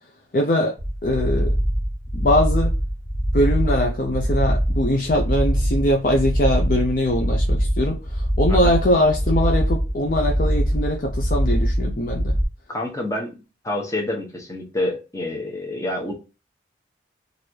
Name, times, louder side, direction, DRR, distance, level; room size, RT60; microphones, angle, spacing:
voice 1, 0.3-0.7 1.0-1.6 2.1-2.7 3.3-12.3, left 1 dB, 45° left, 0.5 m, -22 dB
sound 1, 0.8-12.4, equal, ahead, 1.3 m, -22 dB
voice 2, 12.7-13.3 13.6-16.1, left 1 dB, 15° left, 1.0 m, -27 dB
3.2 x 2.6 x 4.5 m
head